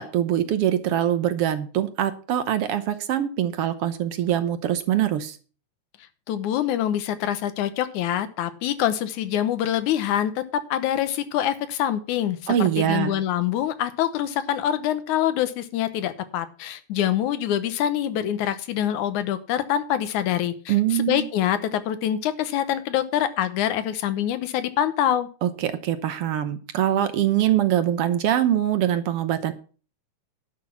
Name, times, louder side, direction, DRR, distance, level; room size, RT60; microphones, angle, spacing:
voice 1, 0.0-5.4 12.5-13.1 20.7-21.3 25.4-29.5, right 11 dB, 65° right, 11 dB, 1.6 m, -23 dB
voice 2, 6.3-25.3, left 11 dB, 85° left, 12 dB, 2.4 m, -25 dB
11.5 x 5.9 x 7.1 m, 0.38 s
omnidirectional pair, 3.3 m